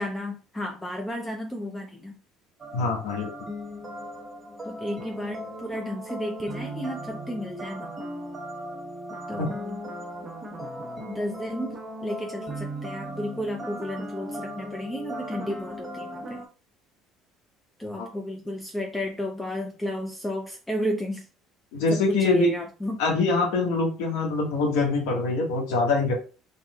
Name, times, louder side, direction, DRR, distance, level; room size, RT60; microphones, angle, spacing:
voice 1, 0.0-2.1 4.6-7.9 9.3-9.8 11.1-11.8 12.0-16.4 17.8-21.3 21.9-23.0, equal, 10° left, 2 dB, 0.7 m, -33 dB
sound 1, 2.6-16.5, equal, 20° right, 1.1 m, -37 dB
voice 2, 2.7-3.3 9.4-9.5 18.0-18.1 21.7-22.5 23.0-26.1, left 3 dB, 85° left, 1 dB, 1.7 m, -24 dB
4.2 x 3.7 x 2.4 m, 0.34 s
cardioid pair, 110°, 0 cm